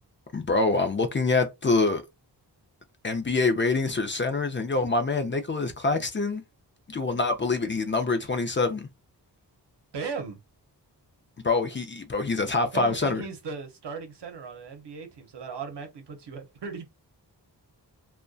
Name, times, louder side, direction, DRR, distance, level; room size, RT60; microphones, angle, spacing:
voice 1, 0.3-2.0 3.0-6.4 6.9-8.9 11.4-13.2, left 3 dB, 30° left, 0.4 m, -25 dB
voice 2, 9.9-10.4 12.7-16.9, right 5 dB, 75° right, 0.7 m, -37 dB
2.5 x 2.2 x 2.2 m
wide cardioid pair, 65°, 42 cm